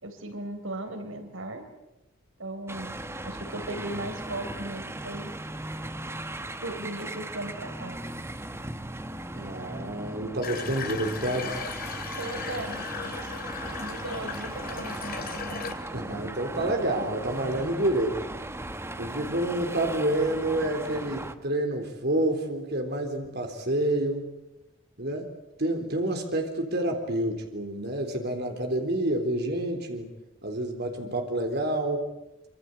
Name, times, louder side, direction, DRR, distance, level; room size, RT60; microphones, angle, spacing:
voice 1, 0.0-1.6 2.4-3.0 3.2-5.3 6.6-8.0 12.2-12.9 13.7-15.0 17.5-17.7, right 1 dB, 85° right, 7 dB, 4.0 m, -37 dB
sound 1, 2.7-21.3, right 1 dB, 15° right, 1.2 m, -37 dB
voice 2, 9.3-11.6 15.9-18.1 19.0-24.3 25.0-25.2 25.6-30.1 30.4-32.1, right 1 dB, 55° right, 3 dB, 3.8 m, -28 dB
Water tap faucet / Bathtub (filling or washing), 10.4-15.7, left 5 dB, 50° left, 2.9 m, -37 dB
26.0 x 25.0 x 8.0 m, 0.93 s
head